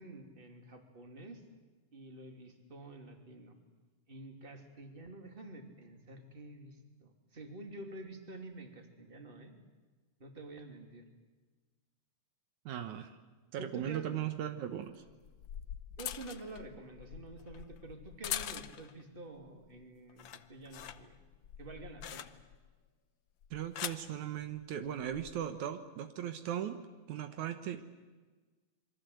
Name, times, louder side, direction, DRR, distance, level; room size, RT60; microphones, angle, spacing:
voice 1, 0.0-1.4 1.9-3.5 4.1-9.6 10.2-11.0 13.6-14.1 16.0-21.2 21.6-22.3 27.3-27.5, right 2 dB, 20° right, 4 dB, 2.8 m, -49 dB
voice 2, 12.7-13.1 13.5-15.0 23.5-26.8 27.1-27.8, right 10 dB, 75° right, 9 dB, 2.5 m, -38 dB
sound 1, 13.8-13.9 15.1-19.0 19.4-19.8 20.1-22.7 23.4-24.1 25.0-25.3, left 10 dB, 85° left, 1.0 m, -43 dB
27.5 x 23.0 x 8.0 m, 1.3 s
omnidirectional pair, 3.5 m